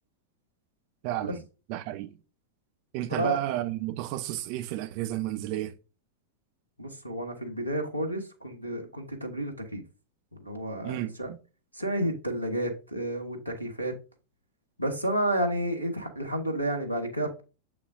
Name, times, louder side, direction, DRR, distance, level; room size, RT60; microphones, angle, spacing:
voice 1, 1.0-1.4 1.7-2.1 2.9-5.7 10.8-11.4, right 13 dB, 45° right, 0.6 m, -32 dB
voice 2, 6.8-9.8 10.3-11.3 11.7-13.9 14.8-17.4, right 1 dB, 85° left, 1.3 m, -31 dB
7.2 x 6.6 x 2.7 m
figure-of-eight pair, 90°, 0 cm